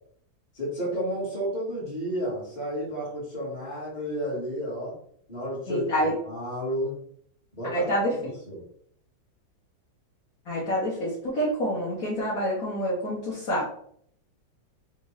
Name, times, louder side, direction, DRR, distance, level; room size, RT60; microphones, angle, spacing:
voice 1, 0.5-4.9 5.3-7.0 7.5-8.6, equal, 25° left, -6 dB, 1.4 m, -32 dB
voice 2, 5.7-6.1 7.7-8.1 10.5-13.6, equal, 55° left, -8 dB, 1.4 m, -27 dB
3.6 x 2.6 x 3.1 m, 0.64 s
omnidirectional pair, 2.0 m